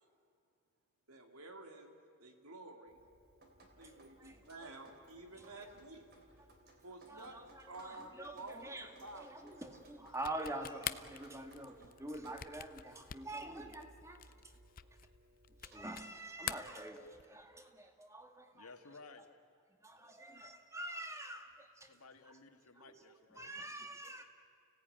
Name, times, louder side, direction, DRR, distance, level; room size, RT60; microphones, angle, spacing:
voice 1, 1.1-3.0 3.8-6.1 6.8-7.4 7.7-9.5, right 2 dB, 85° right, 5 dB, 2.7 m, -51 dB
Drip, 2.9-15.9, right 1 dB, 50° right, 3.4 m, -63 dB
voice 2, 4.2-4.7 5.4-5.6 7.1-14.2 15.6-18.7 19.8-21.9 22.8-23.0 23.4-24.2, right 1 dB, 15° right, 6 dB, 1.8 m, -46 dB
sound 1, 10.1-16.1 16.4-17.4, left 10 dB, 40° left, 0.5 m, -45 dB
voice 3, 18.5-19.3 21.9-23.5, left 3 dB, 90° left, 5 dB, 2.0 m, -56 dB
30.0 x 17.0 x 9.4 m, 2.4 s
head